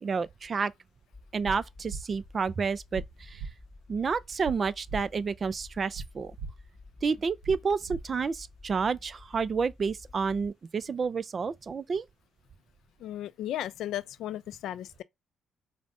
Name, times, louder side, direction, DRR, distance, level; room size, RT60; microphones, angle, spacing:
voice 1, 0.0-0.7 1.3-3.4 3.9-6.4 7.0-12.0, right 5 dB, 40° right, 0.3 m, -30 dB
sound 1, 1.1-10.5, left 3 dB, 20° left, 0.6 m, -52 dB
sound 2, 1.4-1.6 1.9-2.0 2.9-3.1 3.4-3.5 4.4-4.6 4.9-5.0 5.9-6.1 6.4-6.5 7.4-7.6 7.9-8.0, right 4 dB, 70° right, 0.7 m, -37 dB
voice 2, 13.0-15.0, left 12 dB, 80° left, 0.3 m, -35 dB
5.0 x 2.1 x 2.4 m
cardioid pair, 90°, 0 cm